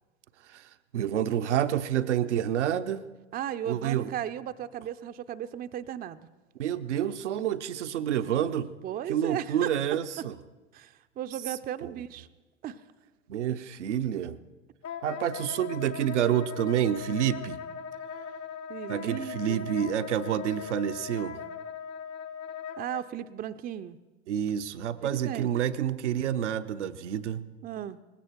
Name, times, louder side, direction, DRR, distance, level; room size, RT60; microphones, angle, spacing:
voice 1, 0.5-3.0 3.7-4.1 6.6-8.7 9.1-10.4 11.5-11.9 13.3-14.4 15.0-17.6 18.9-21.4 24.3-27.4, right 10 dB, 75° right, 12 dB, 0.8 m, -28 dB
voice 2, 3.3-6.3 8.8-9.8 10.7-12.3 12.6-12.8 18.7-19.7 22.8-24.0 25.0-25.5 27.6-28.0, right 10 dB, 25° right, 10 dB, 0.6 m, -36 dB
Wind instrument woodwind instrument, 14.8-23.0, left 7 dB, 40° left, 1.0 m, -39 dB
19.5 x 16.5 x 4.5 m, 1.2 s
figure-of-eight pair, 80°, 36 cm